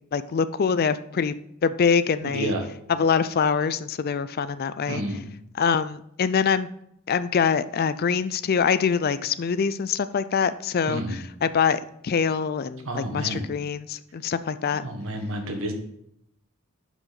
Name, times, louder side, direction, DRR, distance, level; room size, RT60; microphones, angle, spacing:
voice 1, 0.1-1.3 1.6-2.5 3.0-5.0 5.6-6.7 7.1-11.0 11.4-14.9, left 6 dB, 45° left, 14 dB, 0.4 m, -24 dB
voice 2, 2.2-2.7 4.9-5.3 10.9-11.2 12.8-13.5 14.7-15.7, right 1 dB, 65° right, 4 dB, 1.5 m, -30 dB
11.5 x 5.0 x 4.1 m, 0.74 s
head